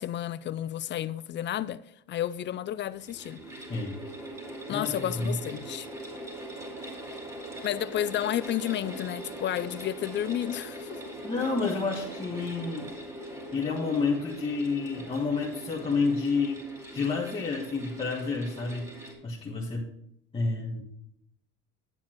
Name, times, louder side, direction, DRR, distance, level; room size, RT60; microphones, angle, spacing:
voice 1, 0.0-1.8 2.1-3.4 4.7-5.9 7.6-11.1, left 11 dB, 35° left, 0.4 m, -31 dB
sound 1, 2.9-19.1, right 1 dB, 10° right, 2.5 m, -41 dB
voice 2, 4.7-5.4 11.2-16.6 16.9-19.9 20.3-20.8, left 4 dB, 15° left, 1.5 m, -30 dB
9.7 x 7.1 x 4.5 m
cardioid pair, 120°, 31 cm